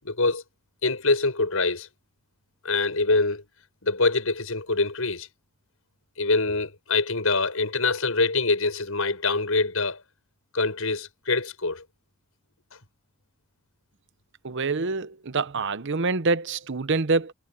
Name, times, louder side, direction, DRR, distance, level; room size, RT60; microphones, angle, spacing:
voice 1, 0.0-0.4 0.8-1.9 2.6-3.4 3.8-5.3 6.2-10.0 10.5-11.8, left 3 dB, 80° left, 6.4 m, -24 dB
voice 2, 14.4-17.3, right 3 dB, 60° right, 0.9 m, -26 dB
head